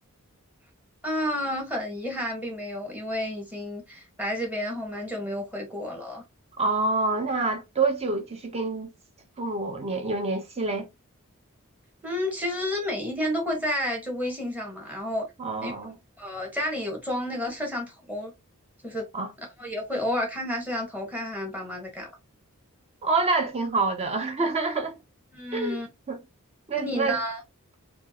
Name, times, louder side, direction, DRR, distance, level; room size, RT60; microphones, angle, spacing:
voice 1, 1.0-6.2 12.0-15.3 15.6-15.7 16.2-18.3 18.8-19.1 19.6-22.1 25.3-25.9 26.8-27.4, left 1 dB, 10° right, 1.4 m, -31 dB
voice 2, 6.6-8.9 9.4-10.9 15.4-16.0 19.1-19.3 23.0-25.0 25.5-25.8 26.1-26.2 26.7-27.2, right 3 dB, 30° right, 0.8 m, -27 dB
4.4 x 2.4 x 2.9 m
head